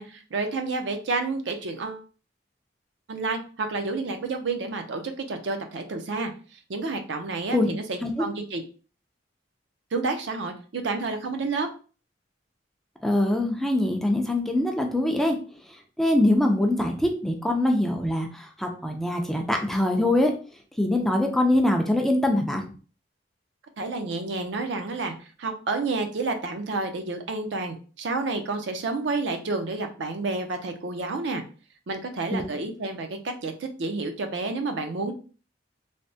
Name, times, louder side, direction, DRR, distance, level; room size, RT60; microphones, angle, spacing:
voice 1, 0.0-2.0 3.1-6.3 6.7-8.6 9.9-11.7 23.8-25.1 25.4-31.4 31.9-35.1, right 3 dB, 70° right, 5 dB, 0.5 m, -30 dB
voice 2, 13.0-15.4 16.0-20.3 20.8-22.6 32.3-32.4, left 1 dB, ahead, 2 dB, 0.3 m, -23 dB
3.3 x 2.0 x 2.6 m, 0.37 s
head